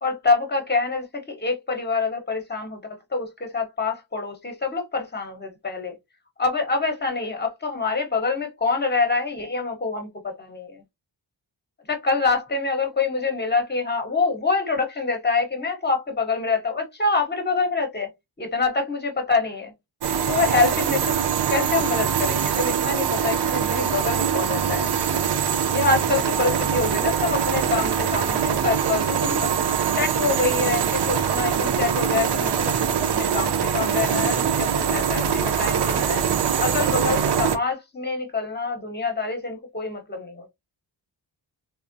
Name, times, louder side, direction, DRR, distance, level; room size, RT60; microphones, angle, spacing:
voice 1, 0.0-5.9 6.4-10.8 11.9-18.1 18.4-19.7 20.3-21.2 21.5-24.9 25.7-29.6 30.0-32.8 33.1-36.2 36.6-40.5, left 4 dB, 20° left, 1.0 m, -26 dB
sound 1, 20.0-37.6, right 7 dB, 60° right, 0.6 m, -23 dB
3.4 x 2.0 x 2.6 m
wide cardioid pair, 95°, 46 cm